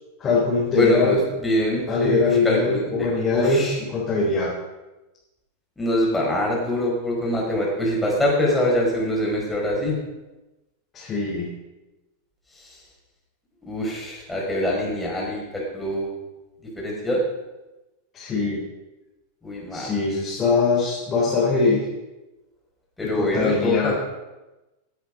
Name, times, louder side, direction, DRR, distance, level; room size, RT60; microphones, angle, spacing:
voice 1, 0.2-1.2 1.9-4.5 10.9-11.5 18.1-18.6 19.7-21.9 23.1-24.0, left 4 dB, 25° left, -6 dB, 4.0 m, -22 dB
voice 2, 0.8-3.8 5.8-10.0 13.6-16.1 16.8-17.3 19.4-19.9 23.0-23.9, left 1 dB, 10° left, -3 dB, 5.0 m, -24 dB
16.0 x 8.2 x 5.3 m, 1.1 s
figure-of-eight pair, 90°, 0 cm